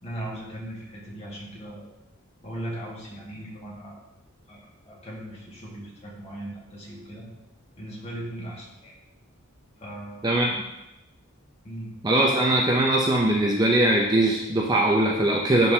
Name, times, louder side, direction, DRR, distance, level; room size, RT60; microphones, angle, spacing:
voice 1, 0.0-1.9 2.4-4.0 4.5-7.3 7.8-8.9 9.8-10.6 11.6-11.9, right 1 dB, 30° left, -5 dB, 1.8 m, -38 dB
voice 2, 12.0-15.7, right 1 dB, 20° right, -1 dB, 0.5 m, -21 dB
11.0 x 3.9 x 2.8 m, 0.90 s
head